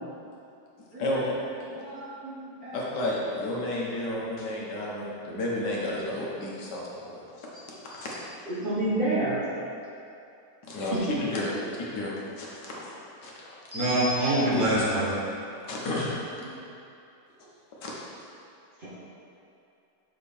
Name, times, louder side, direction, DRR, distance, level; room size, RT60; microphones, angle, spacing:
voice 1, 1.0-1.3 2.7-7.5 7.9-8.2 10.7-13.3 15.7-16.1 17.8-17.9, left 1 dB, 75° left, -5 dB, 1.8 m, -32 dB
voice 2, 1.7-2.3 2.6-2.8 13.7-15.1, right 1 dB, 55° right, -8 dB, 2.1 m, -27 dB
voice 3, 8.5-9.4 10.9-11.0 13.7-14.4 18.8-18.9, right 1 dB, 35° right, -9 dB, 1.1 m, -28 dB
6.8 x 5.2 x 4.3 m, 2.7 s
omnidirectional pair, 1.9 m